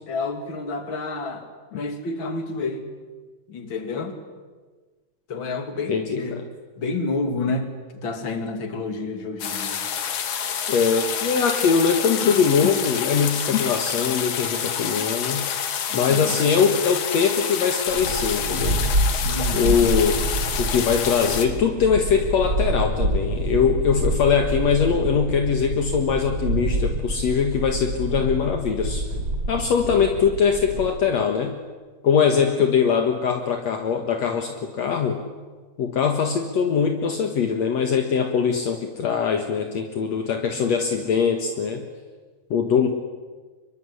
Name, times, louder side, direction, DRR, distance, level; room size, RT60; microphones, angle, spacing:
voice 1, 0.1-1.4 1.7-2.8 3.5-4.1 5.3-6.4 6.8-7.7 8.0-9.8 15.9-16.4 19.2-19.8, left 3 dB, 40° left, 6 dB, 3.3 m, -29 dB
voice 2, 5.9-6.5 10.7-15.4 15.9-18.9 19.5-20.2 20.6-29.1 29.5-31.5 32.0-35.2 35.8-41.8 42.5-42.9, left 6 dB, 65° left, 4 dB, 2.7 m, -22 dB
sound 1, 9.4-21.5, left 8 dB, 80° left, 3.4 m, -28 dB
sound 2, 17.9-30.9, right 1 dB, 35° right, 3.9 m, -27 dB
26.0 x 22.5 x 10.0 m, 1.4 s
omnidirectional pair, 3.4 m